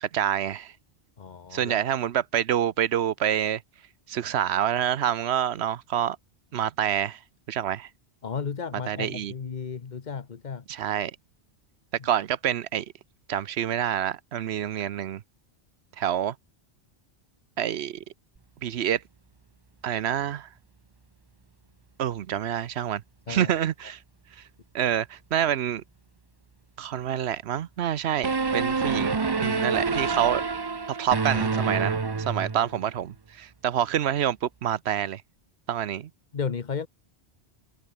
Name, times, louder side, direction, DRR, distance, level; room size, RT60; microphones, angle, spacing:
voice 1, 0.0-0.7 1.5-3.6 4.1-6.2 6.5-7.2 7.5-7.9 8.9-9.3 10.7-11.1 12.0-12.9 13.3-15.2 16.0-16.3 17.6-18.0 18.6-19.0 19.8-20.5 22.0-23.0 23.3-24.0 24.7-25.8 26.8-30.4 30.9-35.2 35.7-36.1, right 10 dB, 75° right, 1.0 m, -27 dB
voice 2, 1.2-1.8 8.2-10.6 23.3-23.5 36.3-36.9, left 6 dB, 45° left, 1.1 m, -34 dB
sound 1, 28.2-32.9, right 4 dB, 25° right, 0.7 m, -27 dB
omnidirectional pair, 1.1 m